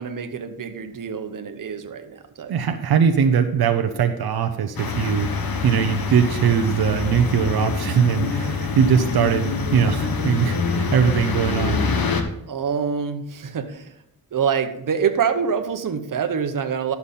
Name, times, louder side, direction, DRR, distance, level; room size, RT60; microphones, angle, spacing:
voice 1, 0.0-2.5 8.4-8.5 12.5-13.9 14.3-16.9, right 7 dB, 60° right, 7 dB, 1.0 m, -26 dB
voice 2, 2.5-11.8, right 7 dB, 85° right, 6 dB, 0.7 m, -21 dB
sound 1, 4.8-12.2, left 4 dB, 70° left, 1.2 m, -25 dB
11.5 x 7.0 x 4.1 m, 0.78 s
wide cardioid pair, 110°, 36 cm